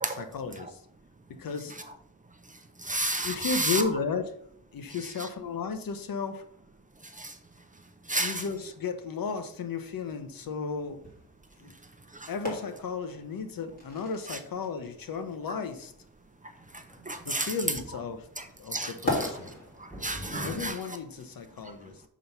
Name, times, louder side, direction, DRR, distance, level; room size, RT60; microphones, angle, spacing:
voice 1, 0.1-0.8 1.3-1.8 3.2-4.3 4.7-6.4 8.2-11.0 11.6-11.7 12.3-15.9 17.2-18.3 18.6-19.5 20.4-22.0, left 5 dB, 75° left, 8 dB, 1.0 m, -34 dB
voice 2, 2.8-3.8 7.2-7.3 8.1-8.4 12.2-12.3 17.1-17.5 18.7-18.9 19.2-19.3 19.8-20.7, right 1 dB, 20° right, 6 dB, 0.7 m, -31 dB
sound 1, 7.0-20.7, left 1 dB, 25° left, 3.0 m, -41 dB
sound 2, 16.5-18.0 18.3-18.6 18.9-20.7, right 1 dB, ahead, 2.7 m, -43 dB
6.2 x 4.6 x 5.6 m, 0.65 s
wide cardioid pair, 120°, 36 cm